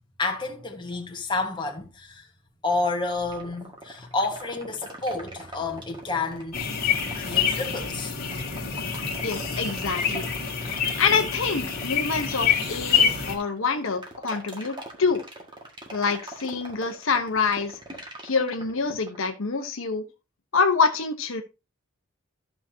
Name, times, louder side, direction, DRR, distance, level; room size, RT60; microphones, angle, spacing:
voice 1, 0.2-2.2 2.6-6.6 6.9-8.1, left 3 dB, 20° left, 1.5 m, -30 dB
sound 1, 3.3-19.2, right 1 dB, 20° right, 1.8 m, -41 dB
sound 2, 6.5-13.3, left 7 dB, 45° left, 2.0 m, -26 dB
voice 2, 9.2-10.3 11.0-15.2 15.9-17.8 18.2-20.0 20.5-21.4, left 5 dB, 65° left, 0.9 m, -26 dB
13.5 x 5.9 x 2.8 m
head